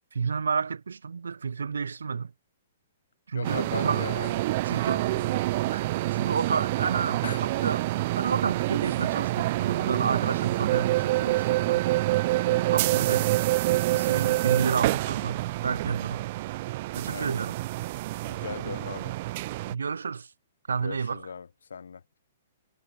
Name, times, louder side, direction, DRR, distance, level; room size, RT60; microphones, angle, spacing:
voice 1, 0.1-2.3 3.3-4.1 4.7-5.1 5.7-7.9 8.2-11.8 12.7-13.4 13.7-16.2 17.0-17.6 19.7-20.3 20.7-21.3, right 5 dB, 75° right, 0.5 m, -30 dB
voice 2, 3.3-5.4 7.2-7.4 12.3-12.7 17.1-17.3 18.2-19.1 20.8-22.0, left 6 dB, 70° left, 1.3 m, -39 dB
sound 1, 3.4-19.7, right 18 dB, 45° right, 0.9 m, -27 dB
figure-of-eight pair, 115°, 0 cm